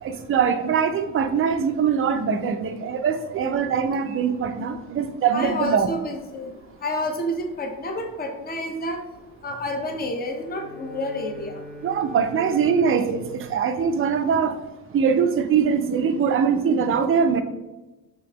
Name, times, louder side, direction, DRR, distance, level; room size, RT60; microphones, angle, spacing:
voice 1, 0.0-5.9 11.8-14.6 14.9-17.4, right 6 dB, 35° right, 8 dB, 0.4 m, -22 dB
voice 2, 5.3-6.5 6.8-9.0 9.4-11.5, left 1 dB, 25° left, 4 dB, 0.7 m, -29 dB
Bowed string instrument, 10.3-14.9, equal, 80° left, 1.4 m, -43 dB
3.4 x 2.9 x 2.9 m, 1.0 s
supercardioid pair, 75°, 39 cm